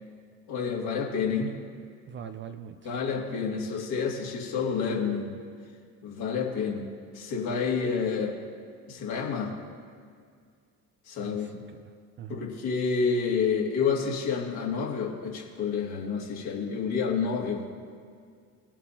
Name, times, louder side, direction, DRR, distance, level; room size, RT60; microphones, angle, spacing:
voice 1, 0.5-1.6 2.8-5.3 6.0-6.9 7.1-8.4 8.9-9.5 11.1-11.5 12.3-17.8, left 5 dB, 50° left, -2 dB, 2.6 m, -29 dB
voice 2, 2.1-3.0 11.2-12.5, right 9 dB, 25° right, 8 dB, 0.4 m, -43 dB
20.0 x 7.3 x 2.9 m, 2.1 s
figure-of-eight pair, 60°, 49 cm